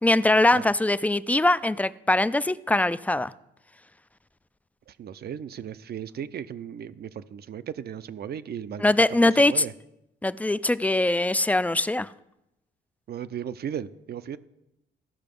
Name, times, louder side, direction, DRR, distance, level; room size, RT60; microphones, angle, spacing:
voice 1, 0.0-3.3 8.8-9.6 10.2-12.1, left 2 dB, 5° left, 0.3 m, -22 dB
voice 2, 4.9-9.7 13.1-14.4, right 9 dB, 55° right, 0.6 m, -36 dB
15.0 x 5.8 x 5.3 m
cardioid pair, 90°, 20 cm